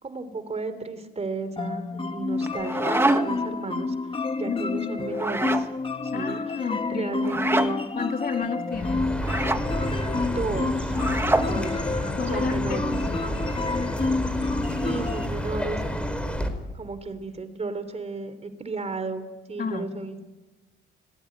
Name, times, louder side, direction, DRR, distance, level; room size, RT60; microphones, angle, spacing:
voice 1, 0.0-5.7 6.0-7.9 10.2-10.9 11.4-11.7 12.3-13.4 14.8-16.0 16.7-20.3, right 3 dB, 30° right, 11 dB, 3.4 m, -34 dB
sound 1, 1.6-15.3, left 3 dB, 25° left, 1.5 m, -29 dB
sound 2, 2.4-3.5 5.1-5.7 7.2-7.7 9.2-9.6 10.9-11.5, right 2 dB, 10° right, 1.5 m, -25 dB
voice 2, 4.5-5.0 6.1-7.2 7.9-9.0 11.3-11.7 12.2-13.2 19.6-19.9, left 6 dB, 50° left, 5 dB, 2.9 m, -31 dB
Chirp tweet, 8.7-16.5, equal, 5° left, 4.3 m, -30 dB
26.0 x 20.0 x 9.6 m, 1.2 s
cardioid pair, 90°, 20 cm